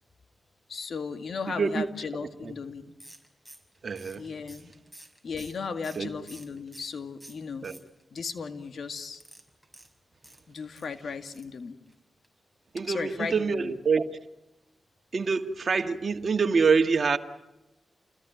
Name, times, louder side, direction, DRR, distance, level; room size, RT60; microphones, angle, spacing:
voice 1, 0.7-2.9 4.2-4.7 5.2-7.7 8.1-9.2 10.5-11.8 12.8-13.8, left 5 dB, 70° left, 8 dB, 2.0 m, -36 dB
sound 1, 3.0-7.0 7.2-8.2 9.1-10.9 11.3-11.6 11.9-12.0 12.2-12.3, right 1 dB, ahead, 5.6 m, -51 dB
voice 2, 3.8-4.2 6.0-6.1 7.6-7.8 12.7-14.2 15.1-17.2, right 5 dB, 60° right, 7 dB, 1.8 m, -25 dB
29.5 x 21.0 x 9.2 m, 0.97 s
cardioid pair, 55°, 0 cm